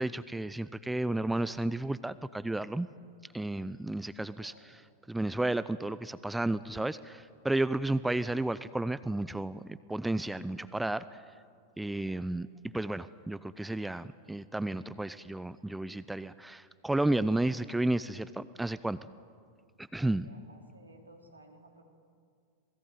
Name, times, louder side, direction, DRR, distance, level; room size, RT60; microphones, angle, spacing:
voice 1, 0.0-2.9 3.3-4.5 5.1-11.2 11.8-12.5 12.7-19.0 19.8-20.3, right 2 dB, 5° right, 16 dB, 0.6 m, -32 dB
voice 2, 4.4-4.7 20.0-21.8, right 1 dB, 80° right, 3 dB, 3.6 m, -56 dB
27.0 x 20.5 x 9.4 m, 2.2 s
figure-of-eight pair, 90°, 0 cm